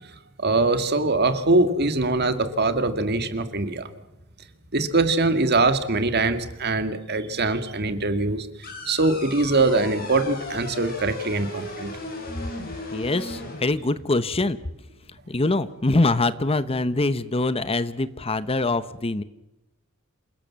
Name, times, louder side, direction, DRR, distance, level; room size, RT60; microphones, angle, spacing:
voice 1, 0.4-3.9 4.7-11.9, right 2 dB, 50° right, 9 dB, 2.2 m, -23 dB
sound 1, 8.6-13.6, left 2 dB, 45° left, 7.0 m, -36 dB
voice 2, 12.9-14.6 15.3-19.2, left 2 dB, 25° left, 14 dB, 0.8 m, -24 dB
28.0 x 17.5 x 7.5 m, 0.94 s
head